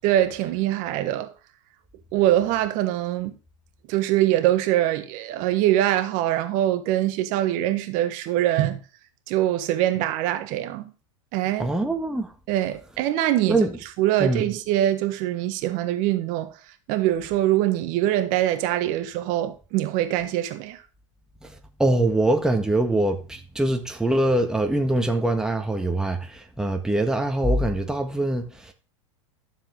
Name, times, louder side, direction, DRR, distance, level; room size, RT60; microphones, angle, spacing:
voice 1, 0.0-1.3 2.1-3.4 3.9-8.8 9.3-10.9 11.3-11.7 12.5-13.6 14.0-16.6 16.9-20.8, right 13 dB, 50° right, 1.4 m, -23 dB
voice 2, 11.6-12.3 13.5-13.7 14.2-14.5 21.4-28.7, right 1 dB, 5° right, 1.7 m, -23 dB
13.0 x 7.3 x 3.8 m
hypercardioid pair, 105°, 17 cm